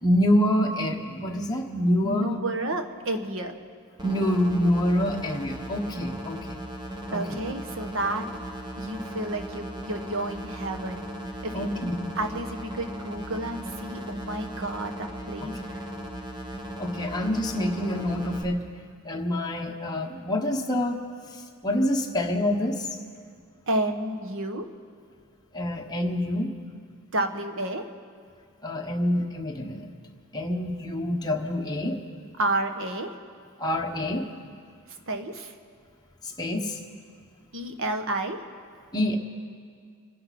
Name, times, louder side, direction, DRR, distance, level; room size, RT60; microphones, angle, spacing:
voice 1, 0.0-2.4 4.0-6.6 7.1-7.3 11.5-12.1 16.8-18.6 19.0-21.0 21.3-22.9 25.5-26.5 28.6-29.9 30.3-32.0 33.6-34.3 36.2-36.8 38.9-39.2, left 1 dB, 20° left, 0 dB, 1.2 m, -26 dB
voice 2, 2.0-3.6 7.1-8.3 8.8-11.1 11.4-11.7 12.1-15.8 23.7-24.7 27.1-27.8 32.4-33.1 35.1-35.5 37.5-38.4, right 1 dB, 65° right, 6 dB, 1.1 m, -30 dB
sound 1, 4.0-18.4, equal, 20° right, 1.4 m, -37 dB
26.0 x 11.0 x 4.2 m, 2.1 s
head